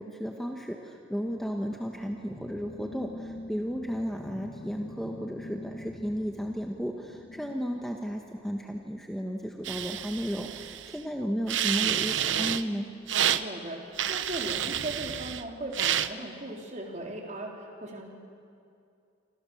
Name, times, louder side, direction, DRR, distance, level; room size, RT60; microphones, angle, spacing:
voice 1, 0.0-12.9, equal, ahead, 2 dB, 1.3 m, -34 dB
sound 1, 1.3-9.1, left 1 dB, 35° left, 0.8 m, -45 dB
sound 2, 9.6-11.0 11.5-12.6 13.1-13.4 14.0-15.4 15.7-16.1, right 10 dB, 80° right, 0.9 m, -29 dB
voice 2, 13.4-18.1, right 1 dB, 40° right, 0 dB, 3.9 m, -38 dB
27.5 x 26.0 x 7.2 m, 2.4 s
head